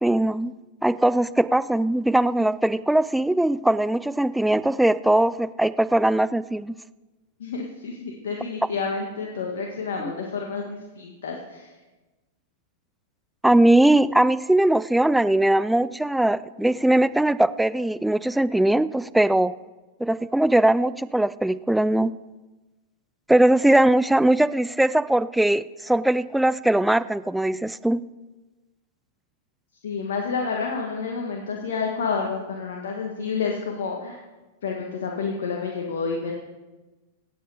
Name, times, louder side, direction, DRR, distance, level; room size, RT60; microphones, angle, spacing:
voice 1, 0.0-0.6 0.8-6.8 13.4-19.5 20.0-22.1 23.3-28.0, right 1 dB, 5° right, 17 dB, 0.4 m, -20 dB
voice 2, 7.4-11.7 29.8-34.2 34.6-36.3, left 5 dB, 75° left, 0 dB, 1.8 m, -29 dB
17.0 x 8.6 x 5.0 m, 1.2 s
hypercardioid pair, 105°, 0 cm